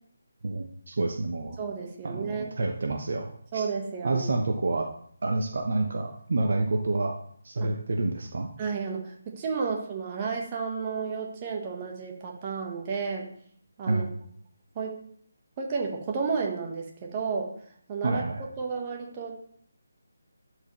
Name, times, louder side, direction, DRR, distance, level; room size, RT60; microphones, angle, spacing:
voice 1, 0.4-1.6 2.0-3.6 4.0-4.9 5.2-7.2 7.4-8.5 13.9-14.1 18.0-18.4, right 2 dB, 55° right, 4 dB, 0.9 m, -28 dB
voice 2, 1.6-2.5 3.5-4.3 7.6-7.7 8.6-13.3 13.8-14.1 14.7-14.9 15.6-17.5 17.9-18.2 18.6-19.4, right 5 dB, 25° right, 0 dB, 1.4 m, -32 dB
11.5 x 4.8 x 3.2 m, 0.62 s
figure-of-eight pair, 150°, 0 cm